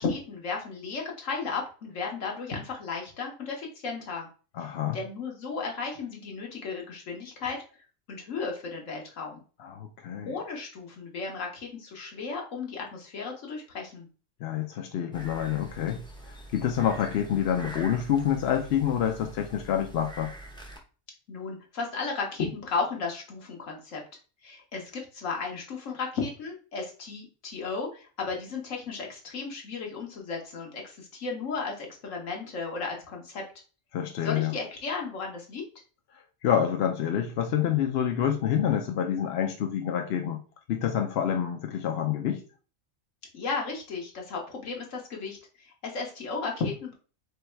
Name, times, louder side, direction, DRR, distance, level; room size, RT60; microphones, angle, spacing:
voice 1, 0.0-4.3 4.9-7.6 8.1-9.4 10.2-14.1 21.3-24.0 24.4-33.4 34.2-35.6 43.3-46.9, left 4 dB, 80° left, 1.5 m, -34 dB
voice 2, 4.5-5.0 9.6-10.4 14.4-20.3 33.9-34.5 36.4-40.4 40.7-42.4, left 9 dB, 65° left, 0.7 m, -27 dB
sound 1, 15.1-20.8, right 1 dB, 5° left, 0.5 m, -45 dB
3.4 x 3.1 x 4.4 m
omnidirectional pair, 1.3 m